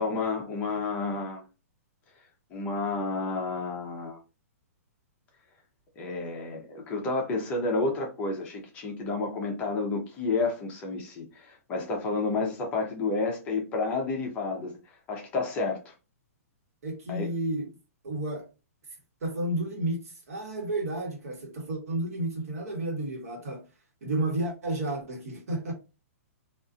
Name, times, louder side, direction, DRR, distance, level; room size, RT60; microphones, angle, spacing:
voice 1, 0.0-1.4 2.5-4.2 6.0-14.7 15.1-15.9 17.1-17.3, left 3 dB, 15° left, 0.6 m, -30 dB
voice 2, 16.8-17.7 18.0-18.5 19.2-20.0 20.3-23.6 24.0-25.7, right 1 dB, 70° right, 1.2 m, -31 dB
2.5 x 2.4 x 2.5 m
hypercardioid pair, 170°, 8 cm